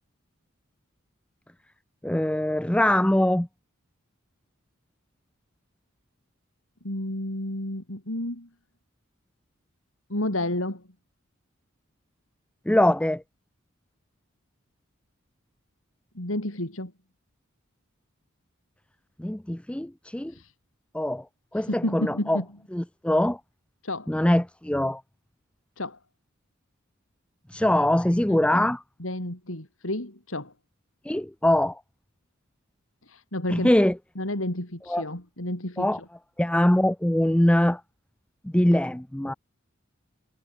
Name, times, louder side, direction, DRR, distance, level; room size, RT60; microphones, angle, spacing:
voice 1, 2.0-3.5 12.7-13.2 19.2-20.3 20.9-21.2 21.5-22.4 22.7-23.4 24.1-25.0 27.5-28.8 31.1-31.8 33.5-34.0 34.9-35.0 35.8-36.0 36.4-37.8 38.4-39.3, left 1 dB, 5° left, 0.5 m, -22 dB
voice 2, 6.8-8.5 10.1-10.8 16.2-16.9 20.3-20.5 21.6-22.5 23.8-24.1 25.8-26.0 28.3-28.6 29.0-30.5 33.1-33.7 34.2-35.9, left 1 dB, 75° left, 5.2 m, -31 dB
head